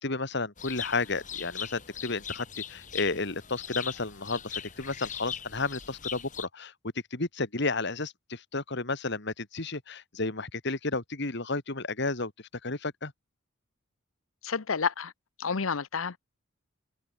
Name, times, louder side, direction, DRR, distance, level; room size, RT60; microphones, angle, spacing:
voice 1, 0.0-6.7 7.1-12.3 12.6-13.1, left 3 dB, 60° left, 2.5 m, -32 dB
sound 1, 0.6-6.5, left 8 dB, 40° left, 3.1 m, -40 dB
voice 2, 14.4-15.1 15.4-16.2, left 5 dB, 80° left, 0.9 m, -30 dB
head